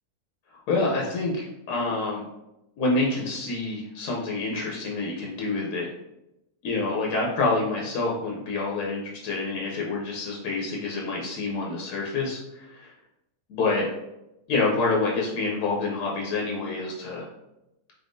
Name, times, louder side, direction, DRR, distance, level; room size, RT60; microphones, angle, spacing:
voice 1, 0.7-2.2 2.8-5.9 6.6-12.9 13.5-13.9 14.5-17.2, left 3 dB, 85° left, -2 dB, 1.3 m, -27 dB
4.0 x 3.5 x 2.5 m, 0.89 s
omnidirectional pair, 1.6 m